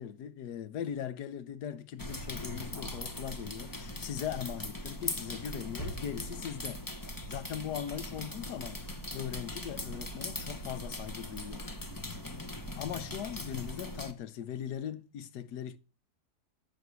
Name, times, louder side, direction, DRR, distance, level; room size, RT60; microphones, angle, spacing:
voice 1, 0.0-11.8 12.8-15.8, left 9 dB, 75° left, 1.4 m, -40 dB
sound 1, 2.0-14.1, left 1 dB, 15° left, 0.8 m, -40 dB
9.1 x 6.4 x 6.9 m
omnidirectional pair, 1.8 m